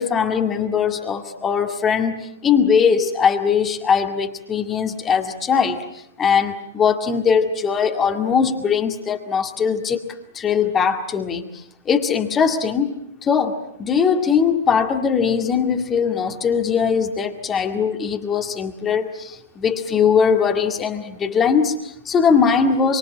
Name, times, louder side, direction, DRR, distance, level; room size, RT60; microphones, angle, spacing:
voice 1, 0.0-5.8 6.2-10.0 10.3-11.4 11.9-12.9 13.2-23.0, left 6 dB, 20° left, 4 dB, 2.1 m, -20 dB
26.0 x 25.0 x 7.5 m, 0.78 s
figure-of-eight pair, 110°, 0 cm